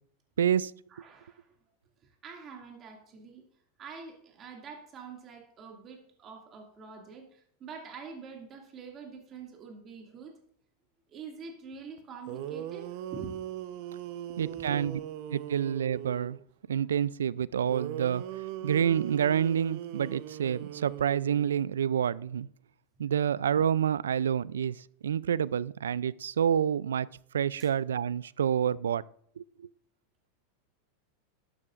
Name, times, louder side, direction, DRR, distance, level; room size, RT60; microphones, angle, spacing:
voice 1, 0.4-0.7 14.4-15.0 15.3-16.4 16.7-18.2 18.6-22.5 23.0-27.1 27.3-29.0 29.4-29.7, right 8 dB, 85° right, 21 dB, 0.3 m, -28 dB
voice 2, 0.9-1.5 2.0-3.5 3.8-10.3 11.1-13.3 14.3-14.8 27.6-27.7, right 5 dB, 35° right, 2 dB, 2.3 m, -46 dB
sound 1, 12.0-12.1 12.3-16.4 17.7-21.7, right 11 dB, 60° right, 0.8 m, -40 dB
12.0 x 12.0 x 2.5 m, 0.63 s
hypercardioid pair, 100°, 0 cm